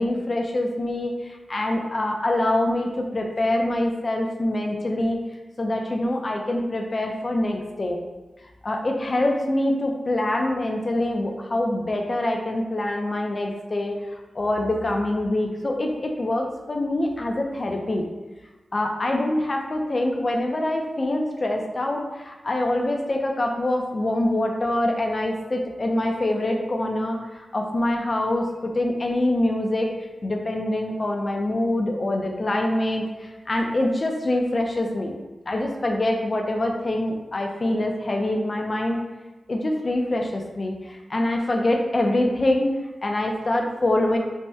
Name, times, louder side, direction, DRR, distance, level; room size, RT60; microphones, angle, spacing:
voice 1, 0.0-5.2 5.6-8.0 8.6-18.0 18.7-29.9 30.2-35.1 35.5-39.0 39.5-42.7 43.0-44.2, left 1 dB, 35° left, 2 dB, 0.4 m, -25 dB
3.4 x 2.1 x 2.6 m, 1.1 s
wide cardioid pair, 115°, 0 cm